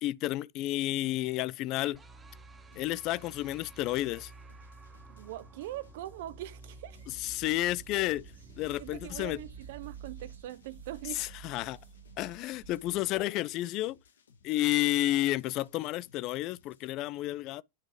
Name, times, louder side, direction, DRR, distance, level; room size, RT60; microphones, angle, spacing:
voice 1, 0.0-2.0 2.8-4.3 7.2-8.3 8.6-9.4 11.2-11.8 12.2-14.0 14.4-17.6, left 16 dB, 40° left, 0.3 m, -31 dB
sound 1, 1.9-11.0, right 3 dB, 15° right, 0.9 m, -52 dB
sound 2, 2.7-16.9, left 5 dB, 65° left, 1.0 m, -63 dB
voice 2, 5.1-7.0 8.8-11.2, right 14 dB, 50° right, 0.3 m, -42 dB
sound 3, 6.9-13.2, right 7 dB, 70° right, 1.4 m, -50 dB
9.9 x 3.6 x 3.1 m
figure-of-eight pair, 90°, 0 cm